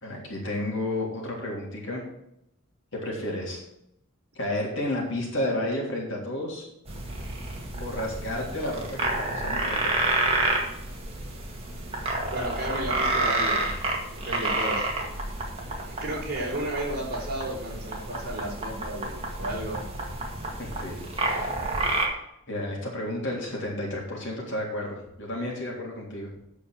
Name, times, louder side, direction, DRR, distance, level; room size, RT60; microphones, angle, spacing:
voice 1, 0.0-2.0 2.9-3.6 4.4-6.7 7.8-10.3 20.6-21.6 22.5-26.3, left 1 dB, 55° left, -2 dB, 3.5 m, -32 dB
sound 1, 6.9-22.1, right 2 dB, 25° right, 2.0 m, -29 dB
voice 2, 12.3-13.8 14.2-14.9 16.0-19.8, right 1 dB, 45° right, -3 dB, 3.8 m, -33 dB
8.5 x 7.0 x 7.5 m, 0.80 s
head